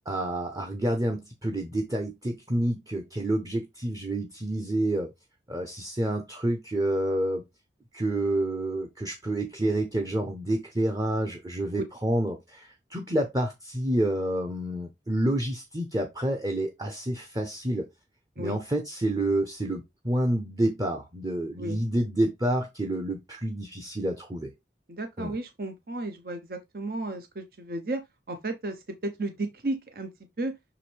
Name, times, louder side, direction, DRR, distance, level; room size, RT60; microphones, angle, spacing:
voice 1, 0.1-5.1 5.5-7.4 7.9-17.9 18.4-24.5 25.2-25.4, right 1 dB, 20° right, 0.8 m, -28 dB
voice 2, 24.9-30.1 30.4-30.6, right 2 dB, 55° right, 0.8 m, -34 dB
6.2 x 4.8 x 3.3 m
head